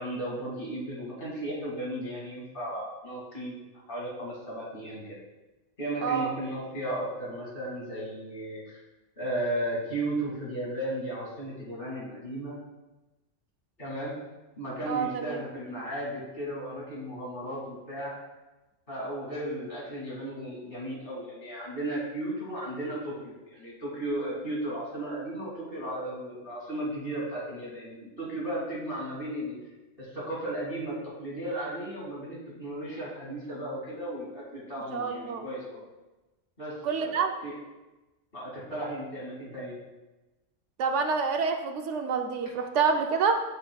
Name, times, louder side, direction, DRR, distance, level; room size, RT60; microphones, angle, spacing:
voice 1, 0.0-3.6 3.9-5.2 5.8-8.8 9.2-12.6 13.8-14.1 14.6-18.1 18.9-29.6 30.0-30.9 31.2-35.8 36.6-36.7 37.0-37.5 38.3-39.8, right 1 dB, 45° left, -6 dB, 2.5 m, -35 dB
voice 2, 14.9-15.4 34.9-35.5 36.8-37.3 40.8-43.3, right 5 dB, 75° right, 5 dB, 0.9 m, -27 dB
10.5 x 5.7 x 2.3 m, 1.1 s
omnidirectional pair, 1.3 m